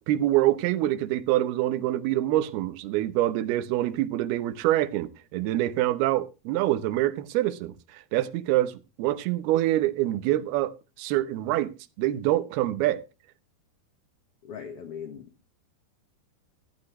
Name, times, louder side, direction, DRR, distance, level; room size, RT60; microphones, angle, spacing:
voice 1, 0.1-8.7 9.0-10.7 11.0-11.7 12.0-13.0, right 14 dB, 85° right, 2.9 m, -25 dB
voice 2, 14.4-15.3, left 7 dB, 60° left, 1.7 m, -39 dB
14.0 x 11.5 x 3.1 m
omnidirectional pair, 4.4 m